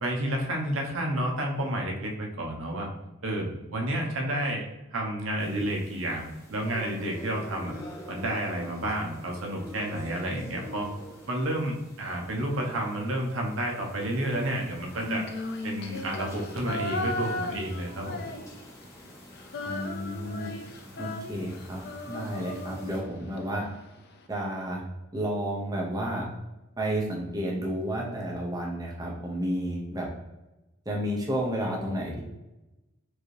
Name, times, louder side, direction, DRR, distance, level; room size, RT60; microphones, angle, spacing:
voice 1, 0.0-2.9 3.2-4.6 4.9-7.7 8.1-10.9 11.3-15.2 15.6-18.3, right 1 dB, 65° right, 0 dB, 0.8 m, -30 dB
sound 1, 5.4-23.0, left 1 dB, 15° left, 0.9 m, -47 dB
Female singing, 14.9-18.8 19.1-23.4, left 2 dB, 50° left, 0.5 m, -36 dB
voice 2, 19.6-20.6 21.0-21.8 22.1-23.6 24.3-24.8 25.1-26.2 26.8-30.1 30.9-32.2, right 1 dB, 15° right, -3 dB, 0.6 m, -31 dB
4.7 x 2.7 x 3.1 m, 1.0 s
head